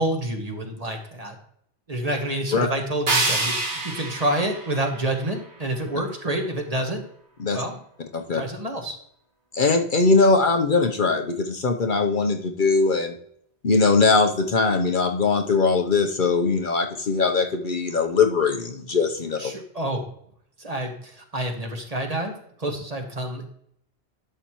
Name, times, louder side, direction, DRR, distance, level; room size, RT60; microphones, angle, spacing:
voice 1, 0.0-1.3 1.9-7.0 7.5-7.8 8.3-8.9 19.4-20.1 20.6-23.5, right 1 dB, 35° right, 2 dB, 1.4 m, -28 dB
sound 1, 3.1-6.0, right 2 dB, 90° right, 2.1 m, -27 dB
voice 2, 9.5-13.1 13.6-19.5, left 4 dB, 50° left, 4 dB, 0.9 m, -21 dB
11.5 x 6.4 x 3.0 m, 0.66 s
omnidirectional pair, 1.1 m